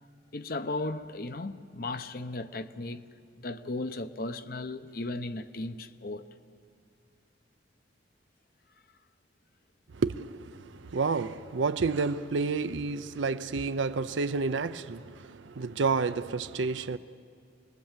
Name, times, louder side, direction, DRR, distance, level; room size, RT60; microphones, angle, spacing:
voice 1, 0.3-3.0 3.4-6.3, left 2 dB, 50° left, 0.8 m, -36 dB
voice 2, 9.9-17.0, right 4 dB, 80° right, 0.6 m, -30 dB
26.5 x 20.5 x 7.4 m
head